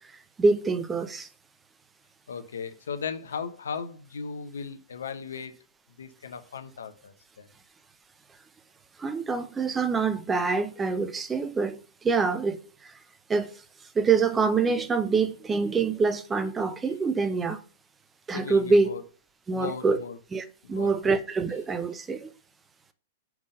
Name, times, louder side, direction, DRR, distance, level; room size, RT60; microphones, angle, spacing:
voice 1, 0.4-1.3 9.0-11.8 12.0-12.6 13.3-13.5 14.0-17.6 18.3-18.9 19.5-20.0 20.3-22.3, right 4 dB, 15° right, 0.7 m, -25 dB
voice 2, 2.3-5.6 6.0-7.5 16.8-16.9 18.3-19.0 19.5-20.2 20.6-21.1, left 6 dB, 75° left, 0.9 m, -37 dB
5.9 x 3.8 x 5.0 m
hypercardioid pair, 110°, 0 cm